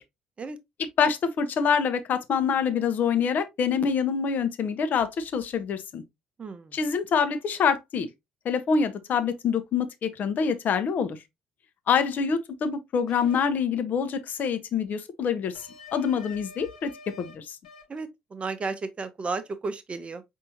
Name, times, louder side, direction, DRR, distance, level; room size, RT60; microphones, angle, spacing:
voice 1, 0.8-6.0 6.7-8.1 8.4-11.2 11.9-15.5 15.9-17.6, left 6 dB, 50° left, 0.7 m, -26 dB
voice 2, 6.4-6.7 17.9-20.2, right 4 dB, 30° right, 0.6 m, -33 dB
sound 1, 13.1-13.4 15.5-17.3 17.6-18.0, left 4 dB, 80° left, 1.0 m, -46 dB
5.5 x 2.7 x 2.7 m
figure-of-eight pair, 45°, 4 cm